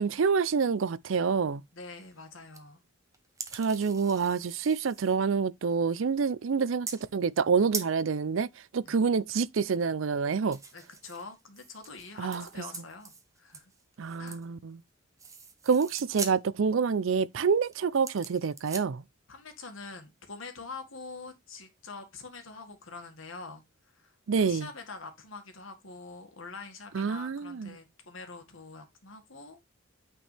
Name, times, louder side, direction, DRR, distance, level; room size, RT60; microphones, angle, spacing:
voice 1, 0.0-1.6 3.5-10.6 12.2-12.4 14.0-14.8 15.7-19.0 24.3-24.7 26.9-27.7, right 5 dB, 70° right, 0.5 m, -27 dB
voice 2, 1.7-2.8 8.8-9.0 10.7-13.1 13.4-13.7 14.2-14.4 19.3-29.6, left 4 dB, 80° left, 2.0 m, -45 dB
sound 1, 2.0-2.2 2.5-2.6 3.1-5.2 5.7-5.9 6.9-7.1 7.4-7.5 7.7-8.0 10.5-14.5 14.8-14.9 15.2-16.4 16.9-17.1 17.7-18.9, right 5 dB, 15° right, 1.1 m, -42 dB
9.0 x 4.5 x 3.4 m
head